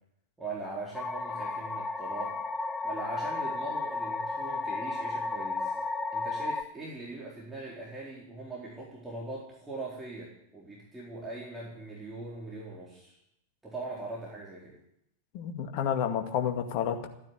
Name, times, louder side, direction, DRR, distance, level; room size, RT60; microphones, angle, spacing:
voice 1, 0.4-2.4 2.8-5.8 6.1-13.2 13.6-14.7, right 2 dB, 10° right, -5 dB, 4.2 m, -41 dB
sound 1, 0.9-6.6, left 3 dB, 10° left, 1.0 m, -33 dB
voice 2, 15.3-17.1, left 8 dB, 45° left, 5 dB, 2.1 m, -30 dB
15.0 x 9.9 x 8.5 m, 0.78 s
figure-of-eight pair, 90°, 0 cm